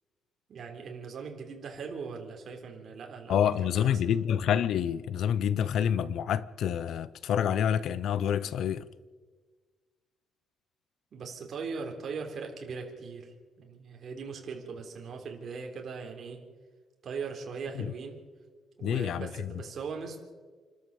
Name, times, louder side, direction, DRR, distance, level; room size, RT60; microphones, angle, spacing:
voice 1, 0.5-4.2 11.1-16.4 17.0-18.2 18.8-20.2, right 5 dB, 45° right, 3.8 m, -40 dB
voice 2, 3.3-8.9 17.8-17.9 18.8-19.5, left 9 dB, 65° left, 0.7 m, -28 dB
28.5 x 13.0 x 7.1 m
cardioid pair, 160°, 0 cm